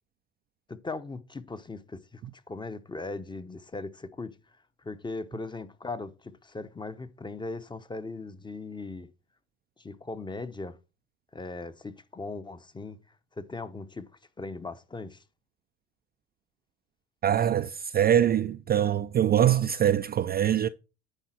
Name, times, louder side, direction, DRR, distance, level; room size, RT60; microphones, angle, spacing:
voice 1, 0.7-4.4 4.8-9.1 9.8-10.8 11.3-13.0 13.3-14.1 14.4-15.2, left 3 dB, 15° left, 0.8 m, -39 dB
voice 2, 17.2-20.7, right 10 dB, 30° right, 0.4 m, -23 dB
10.0 x 4.0 x 5.7 m
hypercardioid pair, 85°, 34 cm